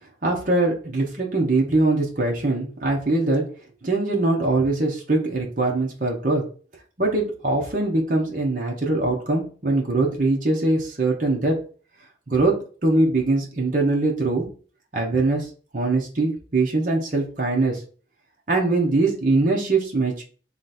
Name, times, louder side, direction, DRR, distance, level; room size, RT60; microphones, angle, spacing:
voice 1, 0.2-3.4 3.8-6.4 7.0-11.6 12.3-12.5 12.8-14.5 14.9-15.5 15.7-17.8 18.5-20.2, right 2 dB, 50° right, -1 dB, 1.0 m, -22 dB
3.2 x 3.1 x 4.1 m, 0.40 s
head